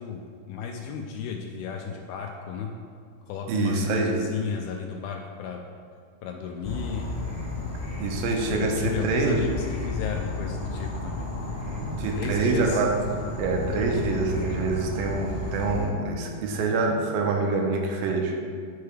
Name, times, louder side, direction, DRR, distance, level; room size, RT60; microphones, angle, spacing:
voice 1, 0.0-2.7 3.3-5.6 6.2-7.1 8.5-11.3 12.1-12.8, left 6 dB, 85° left, 2 dB, 2.2 m, -33 dB
voice 2, 3.5-4.2 8.0-9.5 11.7-13.0 13.4-18.4, right 3 dB, 80° right, 1 dB, 2.2 m, -26 dB
Insect / Frog, 6.6-15.8, left 2 dB, 35° left, 0.9 m, -33 dB
11.5 x 4.6 x 3.3 m, 2.1 s
omnidirectional pair, 4.7 m